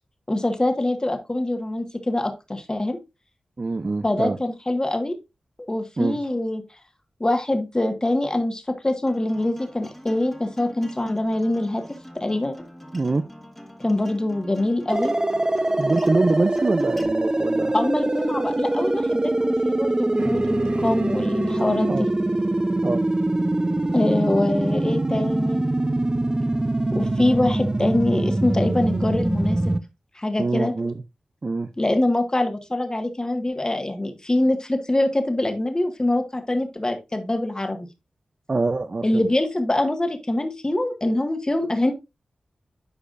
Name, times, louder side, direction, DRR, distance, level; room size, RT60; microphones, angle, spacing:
voice 1, 0.3-3.0 4.0-5.1 5.7-6.6 7.2-11.8 12.1-12.5 13.8-15.1 17.7-22.1 23.9-25.6 26.9-29.6 30.2-30.7 31.8-37.9 39.0-41.9, left 1 dB, 25° left, 6 dB, 1.7 m, -24 dB
voice 2, 3.6-4.4 6.0-6.2 12.9-13.2 15.8-17.7 21.9-22.1 22.8-23.0 30.4-30.9 31.4-31.7 38.5-39.2, right 3 dB, 45° right, 9 dB, 0.5 m, -24 dB
Acoustic guitar, 9.1-17.1, equal, 10° left, 1.7 m, -44 dB
sound 1, 14.9-29.8, right 2 dB, 30° right, 0.9 m, -23 dB
sound 2, 20.2-24.9, right 1 dB, 75° right, 2.7 m, -38 dB
11.5 x 4.9 x 2.6 m, 0.24 s
cardioid pair, 40°, 3 cm